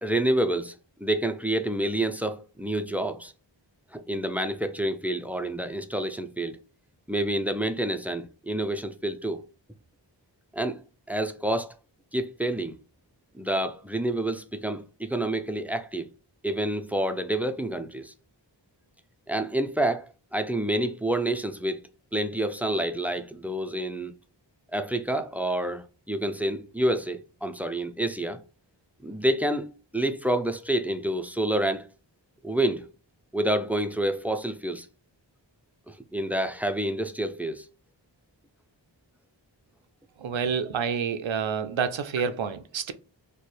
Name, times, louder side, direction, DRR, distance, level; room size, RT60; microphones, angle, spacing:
voice 1, 0.0-3.3 3.9-6.6 7.1-9.4 10.5-10.8 11.1-11.7 12.1-12.8 13.3-16.1 16.4-18.1 19.3-20.1 20.3-21.8 22.1-24.1 24.7-28.4 29.0-31.9 32.4-32.9 33.3-34.9 35.9-37.7, right 1 dB, 5° right, 0.4 m, -28 dB
voice 2, 40.2-42.9, right 6 dB, 80° right, 0.5 m, -28 dB
3.2 x 2.2 x 4.2 m
wide cardioid pair, 40°, 45 cm